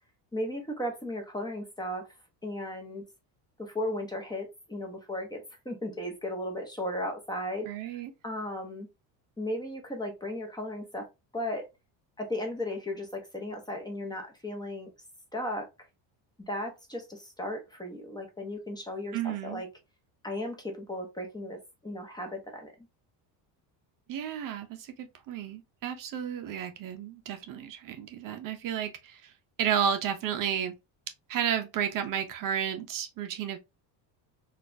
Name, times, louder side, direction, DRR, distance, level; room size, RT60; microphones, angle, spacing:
voice 1, 0.3-2.1 2.4-3.0 3.6-8.9 9.4-11.1 11.3-11.7 12.2-14.9 15.3-15.7 16.5-19.7 20.2-22.7, left 1 dB, 10° left, 0.8 m, -36 dB
voice 2, 7.7-8.1 19.1-19.6 24.1-29.2 29.6-30.7 31.3-33.6, right 9 dB, 50° right, 0.6 m, -32 dB
4.1 x 2.4 x 2.5 m
cardioid pair, 140°, 43 cm